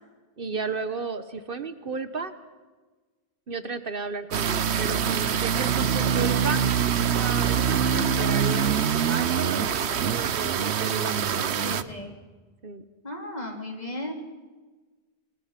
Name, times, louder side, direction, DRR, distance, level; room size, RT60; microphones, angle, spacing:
voice 1, 0.4-2.3 3.5-6.7 7.2-11.6 12.6-12.8, right 4 dB, 55° right, 10 dB, 1.2 m, -33 dB
sound 1, 4.3-11.8, right 7 dB, 80° right, 1.1 m, -24 dB
voice 2, 8.0-8.3 11.6-12.1 13.0-14.1, left 1 dB, 40° left, 1 dB, 3.8 m, -35 dB
28.5 x 20.0 x 5.9 m, 1.3 s
omnidirectional pair, 1.1 m